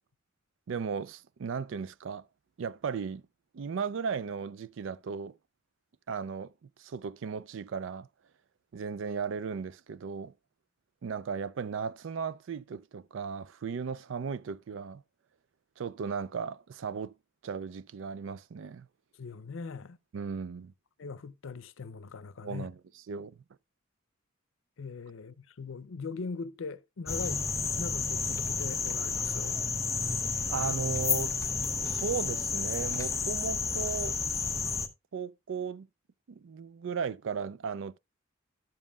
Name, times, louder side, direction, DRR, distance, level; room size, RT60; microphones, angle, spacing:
voice 1, 0.7-2.2 2.6-3.2 3.5-5.3 6.1-6.5 6.8-8.1 8.7-10.3 11.0-15.0 15.8-17.1 17.4-18.9 20.1-20.7 22.4-22.8 23.1-23.3 30.5-31.4 31.8-34.2 35.1-35.9 36.3-38.0, right 6 dB, 75° right, 0.4 m, -36 dB
voice 2, 19.2-20.0 21.0-22.7 24.8-27.5 27.8-29.6, left 4 dB, 85° left, 0.6 m, -40 dB
sound 1, 27.1-34.9, left 4 dB, 15° left, 0.7 m, -31 dB
12.0 x 7.3 x 2.3 m
head